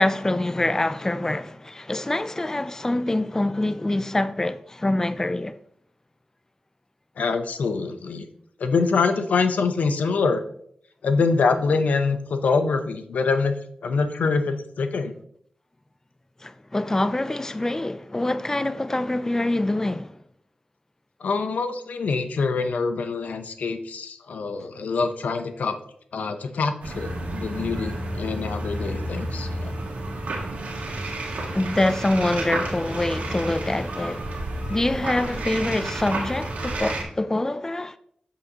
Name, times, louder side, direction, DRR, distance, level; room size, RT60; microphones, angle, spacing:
voice 1, 0.0-5.6 16.4-20.2 31.5-34.4 34.7-38.0, left 1 dB, 20° left, 0.4 m, -25 dB
voice 2, 7.2-8.3 8.6-10.4 11.0-13.5 13.8-15.1 21.2-25.8 26.1-29.7, left 4 dB, 90° left, 0.7 m, -25 dB
sound 1, 26.8-37.0, right 1 dB, 90° right, 1.6 m, -31 dB
7.6 x 6.8 x 2.9 m
cardioid pair, 55°, 3 cm